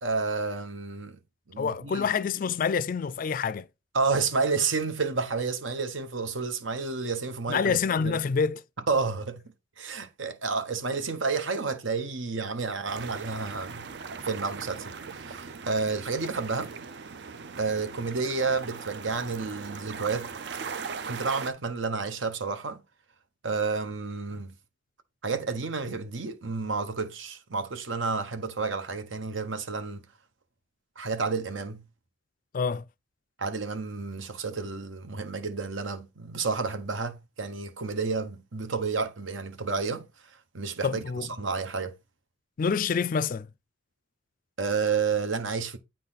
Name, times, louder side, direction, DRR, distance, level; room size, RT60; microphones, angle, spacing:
voice 1, 0.0-1.2 1.5-2.1 3.9-7.8 8.0-8.2 8.9-13.9 14.2-16.7 17.6-20.3 21.1-22.8 23.4-24.5 25.2-30.0 31.0-31.8 33.4-40.1 40.5-41.0 41.4-41.9 44.6-45.8, right 4 dB, 75° right, 1.0 m, -30 dB
voice 2, 1.6-3.7 7.5-8.6 32.5-32.8 40.8-41.3 42.6-43.5, left 6 dB, 45° left, 0.3 m, -27 dB
sound 1, 12.9-21.5, right 5 dB, 60° right, 0.5 m, -39 dB
8.9 x 4.0 x 4.0 m
head